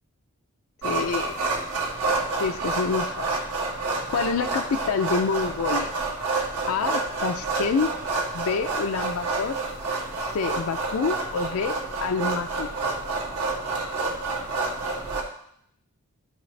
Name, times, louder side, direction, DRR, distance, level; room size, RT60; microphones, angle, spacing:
voice 1, 0.8-1.4 2.4-3.4 4.1-6.0 6.7-7.9 8.3-9.6 10.2-12.7, left 5 dB, 70° left, 8 dB, 0.4 m, -27 dB
sound 1, 0.8-15.2, right 3 dB, 90° right, 1.9 m, -28 dB
14.0 x 4.7 x 3.2 m, 0.71 s
head